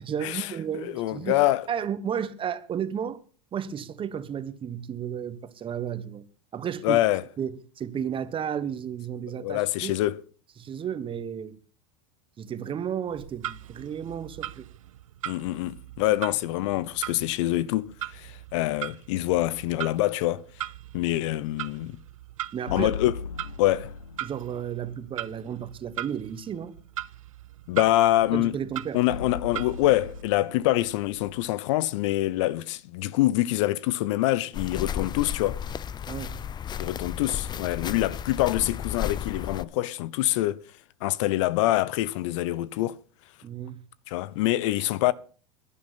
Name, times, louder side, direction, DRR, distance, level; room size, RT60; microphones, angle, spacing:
voice 1, 0.1-1.4 1.7-3.2 3.5-6.2 6.5-7.0 7.4-9.9 10.6-11.6 12.4-14.7 22.5-22.9 24.2-26.8 28.3-29.0 36.1-36.4 43.4-43.8, right 8 dB, 30° right, 1.4 m, -33 dB
voice 2, 0.8-1.6 6.8-7.2 9.4-10.2 15.2-20.4 20.9-22.0 22.7-23.1 23.6-23.9 27.7-28.6 28.9-35.6 36.8-40.6 41.0-43.0 44.1-45.1, left 15 dB, 65° left, 0.7 m, -25 dB
Clock, 13.1-30.2, right 12 dB, 85° right, 0.6 m, -40 dB
sound 1, 22.7-24.8 29.1-32.3, left 5 dB, 90° left, 1.9 m, -38 dB
sound 2, 34.5-39.7, left 9 dB, 25° left, 0.5 m, -33 dB
12.0 x 11.0 x 5.8 m
hypercardioid pair, 95°, 17 cm